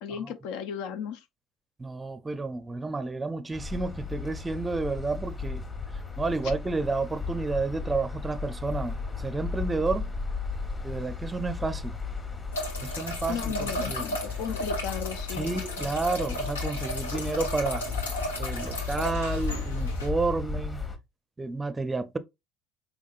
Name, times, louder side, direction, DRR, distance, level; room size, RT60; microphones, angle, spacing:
voice 1, 0.0-1.2 13.3-15.6, left 7 dB, 65° left, 0.6 m, -35 dB
voice 2, 1.8-5.6 6.2-10.1 10.8-11.9 12.8-14.1 15.4-17.8 18.4-20.8 21.4-22.2, right 3 dB, 20° right, 0.5 m, -31 dB
sound 1, 3.5-21.0, left 4 dB, 25° left, 1.2 m, -35 dB
sound 2, 12.5-20.1, equal, 90° left, 0.9 m, -35 dB
4.7 x 3.6 x 2.4 m
hypercardioid pair, 70°, 0 cm